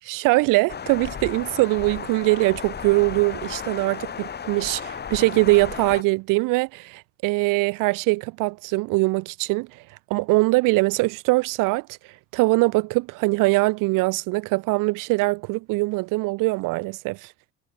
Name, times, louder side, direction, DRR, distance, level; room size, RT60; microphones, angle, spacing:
voice 1, 0.1-9.8 10.1-11.9 12.3-17.3, right 24 dB, 65° right, 1.0 m, -22 dB
sound 1, 0.7-6.0, left 7 dB, 30° left, 1.3 m, -34 dB
hypercardioid pair, 70°, 35 cm